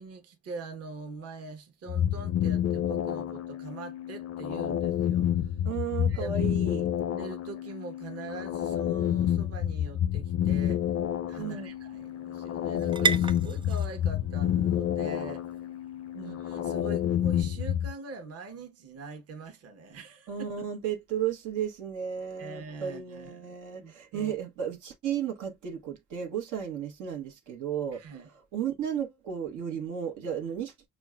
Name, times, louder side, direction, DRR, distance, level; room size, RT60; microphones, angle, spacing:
voice 1, 0.0-5.5 6.1-6.8 7.1-10.8 11.3-15.4 16.2-20.7 22.4-24.4 27.9-28.3, right 3 dB, 55° right, 0.9 m, -43 dB
sound 1, 1.9-17.9, left 10 dB, 55° left, 0.5 m, -29 dB
voice 2, 5.6-6.9 11.4-11.7 16.1-16.4 20.3-28.0 28.5-30.9, right 8 dB, 90° right, 1.0 m, -34 dB
sound 2, 9.4-17.3, right 4 dB, 15° right, 0.4 m, -37 dB
6.1 x 2.1 x 2.3 m
cardioid pair, 90°, 30 cm